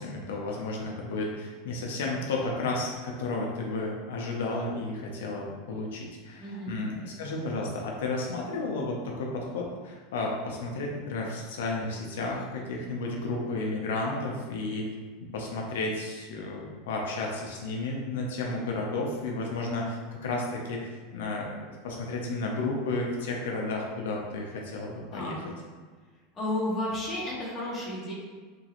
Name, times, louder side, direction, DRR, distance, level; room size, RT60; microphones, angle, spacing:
voice 1, 0.0-14.9 15.3-25.4, left 2 dB, 85° left, -1 dB, 0.4 m, -32 dB
voice 2, 6.4-6.8 25.1-25.3 26.3-28.1, left 1 dB, 20° left, -8 dB, 1.1 m, -32 dB
2.9 x 2.4 x 2.8 m, 1.4 s
supercardioid pair, 140°, 0 cm